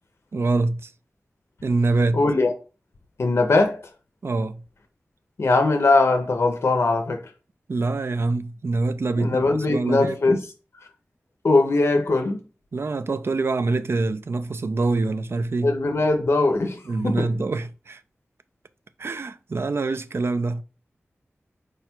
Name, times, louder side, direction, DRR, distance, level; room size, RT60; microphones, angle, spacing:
voice 1, 0.3-0.9 1.6-2.2 4.2-4.6 7.7-9.4 9.7-10.2 12.7-15.7 16.9-18.0 19.0-20.6, right 3 dB, 60° right, 0.4 m, -25 dB
voice 2, 2.1-2.5 3.2-3.8 5.4-7.3 9.2-10.4 11.4-12.4 15.6-17.3, left 3 dB, 70° left, 0.5 m, -20 dB
4.8 x 2.2 x 4.3 m
wide cardioid pair, 80°, 5 cm